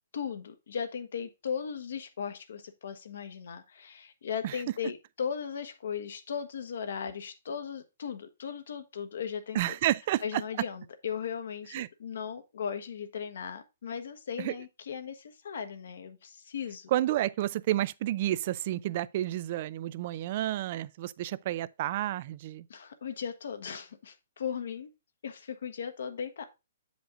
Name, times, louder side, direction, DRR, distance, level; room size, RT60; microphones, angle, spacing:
voice 1, 0.1-9.6 10.2-16.9 22.7-24.9 25.2-26.4, left 7 dB, 75° left, 1.1 m, -37 dB
voice 2, 9.5-10.4 11.7-11.9 14.4-14.5 16.9-22.6, right 14 dB, 45° right, 0.4 m, -30 dB
7.8 x 5.2 x 3.6 m
hypercardioid pair, 155°, 0 cm